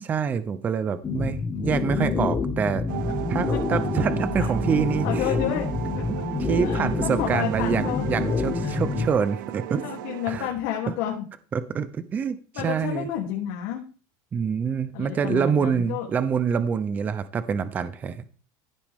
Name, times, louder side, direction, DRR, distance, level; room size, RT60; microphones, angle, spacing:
voice 1, 0.0-2.8 3.3-5.3 6.4-9.8 10.3-10.5 10.9-11.0 11.5-13.1 14.3-18.2, right 6 dB, 15° right, 13 dB, 0.5 m, -26 dB
sound 1, 1.0-9.1, left 4 dB, 15° left, 1.0 m, -27 dB
voice 2, 1.9-2.3 4.4-4.5 5.0-5.7 6.6-8.0 8.6-9.0 9.7-11.2 12.5-13.8 14.9-16.1, left 10 dB, 60° left, -1 dB, 2.9 m, -30 dB
sound 2, 2.9-10.5, right 14 dB, 75° right, 0.8 m, -35 dB
15.0 x 8.4 x 3.6 m, 0.37 s
cardioid pair, 180°, 11 cm